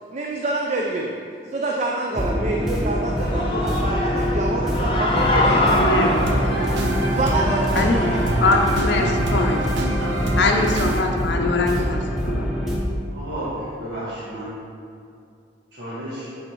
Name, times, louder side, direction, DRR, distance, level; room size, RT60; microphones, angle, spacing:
voice 1, 0.1-1.2 1.5-5.9 7.2-8.3, right 2 dB, 40° right, 0 dB, 0.4 m, -27 dB
sound 1, 2.1-12.8, equal, ahead, 0.8 m, -24 dB
Human voice / Cheering, 3.0-9.6, left 1 dB, 30° left, 0.6 m, -26 dB
voice 2, 5.7-6.1 7.8-8.0 8.4-9.6 10.4-12.5, left 3 dB, 70° left, 2 dB, 0.5 m, -22 dB
sound 2, 5.9-11.0, right 2 dB, 80° right, 0.6 m, -27 dB
voice 3, 13.1-14.5 15.7-16.3, right 1 dB, 60° right, -11 dB, 1.3 m, -32 dB
8.0 x 3.4 x 4.4 m, 2.5 s
head